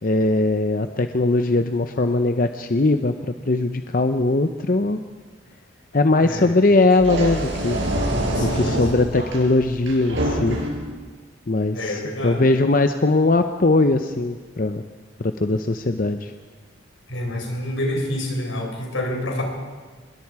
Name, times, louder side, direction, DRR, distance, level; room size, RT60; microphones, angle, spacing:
voice 1, 0.0-5.0 5.9-7.8 8.4-10.6 11.5-14.8 15.2-16.3, left 2 dB, 45° left, 8 dB, 0.7 m, -20 dB
voice 2, 6.2-6.7 8.3-9.1 11.7-12.4 17.1-19.4, left 1 dB, 85° left, 2 dB, 4.8 m, -28 dB
sound 1, 6.9-10.9, right 1 dB, 75° right, 5.8 m, -26 dB
25.0 x 21.5 x 4.8 m, 1.4 s
head